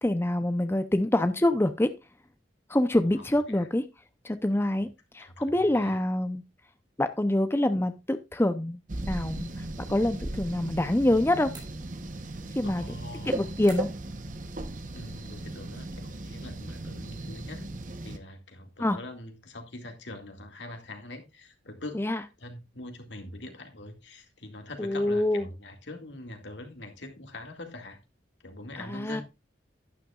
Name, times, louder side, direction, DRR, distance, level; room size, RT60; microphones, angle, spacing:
voice 1, 0.0-1.9 2.7-3.8 4.2-6.4 7.0-8.8 9.1-11.5 12.6-12.9 13.3-13.9 18.8-19.0 21.9-22.2 24.8-25.4 28.8-29.2, left 1 dB, 15° left, 0.6 m, -26 dB
voice 2, 3.1-3.7 5.2-6.0 12.6-13.5 14.9-17.7 18.0-22.0 22.4-28.0 28.4-29.2, left 2 dB, 90° left, 2.1 m, -43 dB
sound 1, 8.9-18.2, right 1 dB, 45° right, 1.0 m, -37 dB
sound 2, 11.5-12.3 13.7-14.2, right 3 dB, 25° right, 4.4 m, -49 dB
11.5 x 10.0 x 2.4 m
head